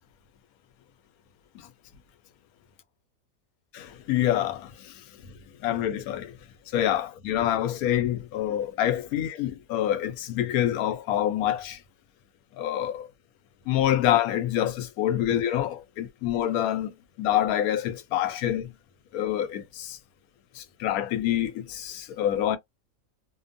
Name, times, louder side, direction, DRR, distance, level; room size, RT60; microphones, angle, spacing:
voice 1, 3.7-5.3 5.6-6.3 6.7-11.8 12.6-13.1 13.7-18.7 19.1-20.0 20.6-22.6, left 11 dB, 85° left, 1.0 m, -26 dB
2.7 x 2.2 x 2.5 m
omnidirectional pair, 1.5 m